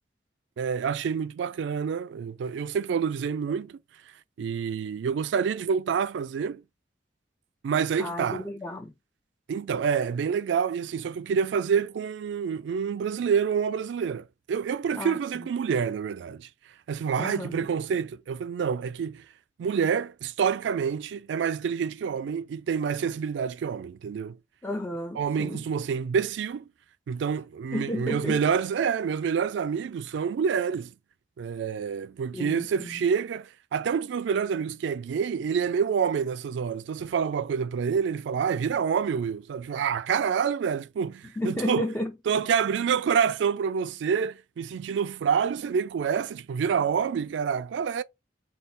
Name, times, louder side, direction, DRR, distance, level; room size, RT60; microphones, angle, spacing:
voice 1, 0.6-3.8 4.4-6.6 7.6-8.5 9.5-16.5 16.9-19.2 19.6-24.4 25.1-26.6 27.1-30.9 31.4-41.9 42.3-48.0, right 6 dB, 70° right, 0.3 m, -27 dB
voice 2, 8.0-8.9 15.0-15.2 17.2-17.7 24.6-25.6 27.7-28.4 32.3-33.0 41.4-42.1, left 1 dB, 10° left, 0.3 m, -32 dB
3.5 x 2.3 x 4.0 m
head